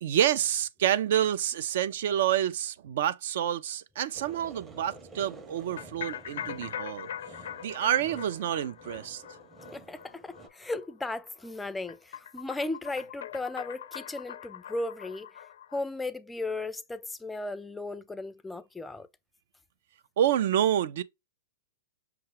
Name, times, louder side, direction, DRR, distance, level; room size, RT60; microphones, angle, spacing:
voice 1, 0.0-7.1 7.6-9.2 20.2-21.0, right 10 dB, 60° right, 0.4 m, -28 dB
sound 1, 4.1-10.5, right 3 dB, 15° right, 0.7 m, -50 dB
sound 2, 5.8-15.8, left 9 dB, 70° left, 0.4 m, -42 dB
voice 2, 9.7-15.4 15.7-19.1, left 2 dB, 5° left, 0.4 m, -36 dB
5.8 x 2.2 x 2.9 m
hypercardioid pair, 140°, 0 cm